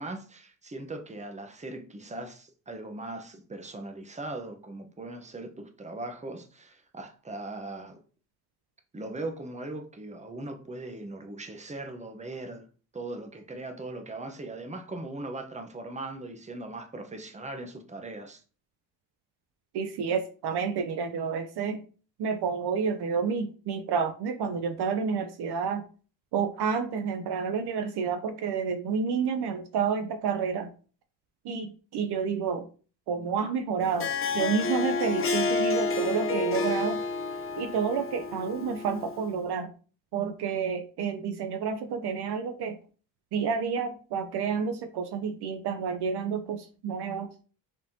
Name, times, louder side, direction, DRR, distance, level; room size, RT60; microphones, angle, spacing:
voice 1, 0.0-8.0 8.9-12.7 12.9-18.4, right 2 dB, 15° right, 1.0 m, -39 dB
voice 2, 19.7-21.8 22.2-25.8 26.3-30.7 31.4-32.7 33.1-37.0 37.6-39.7 40.1-42.8 43.3-47.3, right 6 dB, 60° right, 0.7 m, -29 dB
Harp, 33.8-39.3, left 4 dB, 30° left, 0.8 m, -30 dB
5.1 x 3.6 x 2.9 m
hypercardioid pair, 60°, 45 cm